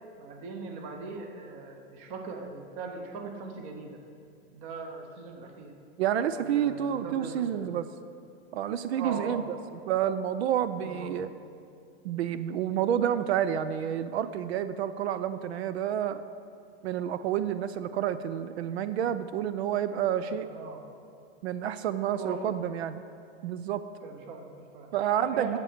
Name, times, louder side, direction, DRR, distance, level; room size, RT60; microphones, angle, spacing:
voice 1, 0.2-4.0 4.5-5.7 6.3-7.7 9.0-9.4 10.8-11.1 20.3-20.9 22.1-22.5 24.0-24.9 25.2-25.6, right 4 dB, 20° right, 3 dB, 0.7 m, -40 dB
voice 2, 6.0-7.9 8.5-9.4 9.9-11.3 12.0-16.2 16.8-20.5 21.4-23.0 23.4-23.8 24.9-25.6, right 10 dB, 75° right, 12 dB, 0.5 m, -29 dB
10.5 x 7.6 x 5.0 m, 2.4 s
supercardioid pair, 175°, 32 cm